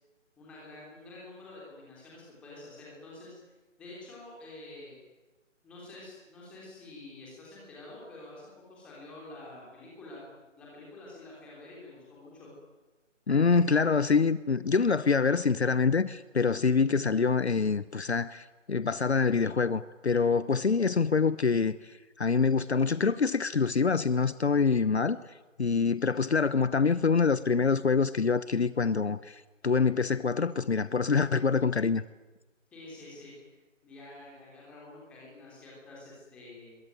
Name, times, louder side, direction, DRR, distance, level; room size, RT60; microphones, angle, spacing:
voice 1, 0.4-3.4 3.8-5.0 5.6-10.2 10.6-12.5 32.7-33.3 33.8-36.8, left 2 dB, 5° left, 3.4 m, -48 dB
voice 2, 13.3-25.2 25.6-32.0, left 5 dB, 55° left, 1.0 m, -25 dB
26.5 x 22.5 x 9.2 m
figure-of-eight pair, 175°, 38 cm